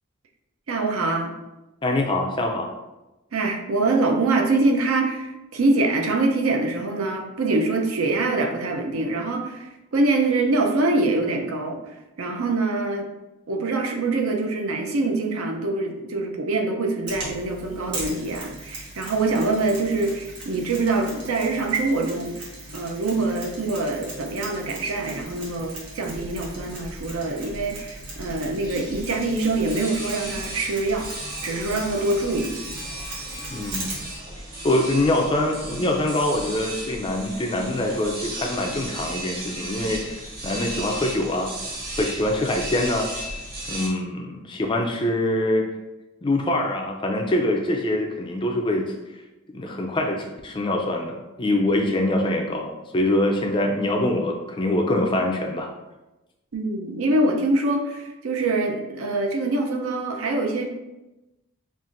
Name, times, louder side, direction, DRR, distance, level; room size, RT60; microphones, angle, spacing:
voice 1, 0.7-1.4 3.3-13.1 13.5-22.4 22.7-31.1 31.4-32.5 56.5-60.7, right 2 dB, 70° right, 2 dB, 0.6 m, -24 dB
voice 2, 1.8-2.7 33.5-33.9 34.6-41.5 41.9-43.1 43.7-45.7 46.2-48.9 49.5-55.7, left 1 dB, 20° left, 2 dB, 0.3 m, -24 dB
Mechanisms, 17.1-34.2, right 2 dB, 85° right, 1.3 m, -39 dB
sound 1, 25.2-43.9, right 1 dB, 45° right, 1.2 m, -36 dB
5.5 x 2.5 x 2.5 m, 1.0 s
head